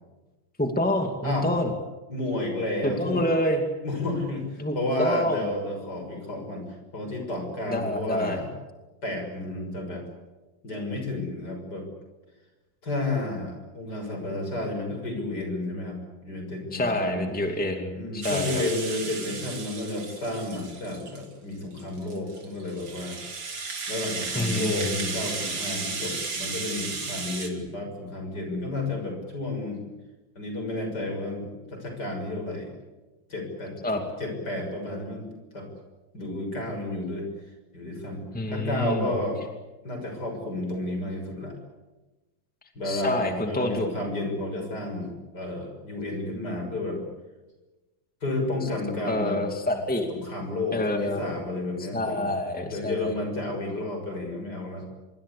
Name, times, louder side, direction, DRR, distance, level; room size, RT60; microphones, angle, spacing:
voice 1, 0.6-1.7 2.8-3.6 4.6-5.5 7.7-8.4 16.7-18.6 24.3-24.9 33.8-34.0 38.3-39.1 42.8-43.9 48.6-48.7 49.0-50.1 50.7-51.2 51.9-53.1, left 1 dB, 5° left, 4 dB, 2.4 m, -27 dB
voice 2, 2.1-3.2 3.8-6.7 6.9-8.5 9.0-10.0 10.6-11.9 12.8-17.3 17.9-23.2 23.9-29.8 30.4-32.7 33.3-35.3 35.5-35.7 36.1-37.3 37.7-39.4 39.8-41.6 42.8-47.0 48.2-49.4 50.1-52.2 52.7-54.8, left 2 dB, 55° left, 4 dB, 7.1 m, -31 dB
Rattle (instrument), 18.2-21.3 21.8-27.5, right 4 dB, 70° right, 3.8 m, -34 dB
25.5 x 23.5 x 8.5 m, 1.2 s
omnidirectional pair, 2.1 m